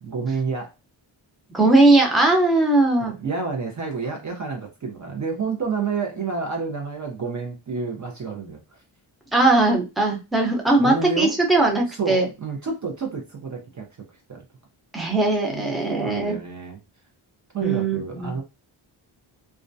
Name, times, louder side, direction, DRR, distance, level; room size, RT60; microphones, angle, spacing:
voice 1, 0.0-0.7 3.0-8.8 10.7-11.3 11.9-13.9 14.3-14.4 15.5-16.8 17.5-18.4, right 4 dB, 35° right, 1 dB, 0.6 m, -29 dB
voice 2, 1.5-3.1 9.3-12.3 14.9-16.4 17.6-18.3, right 2 dB, ahead, 0 dB, 0.7 m, -19 dB
2.3 x 2.1 x 2.5 m, 0.27 s
cardioid pair, 70°, 49 cm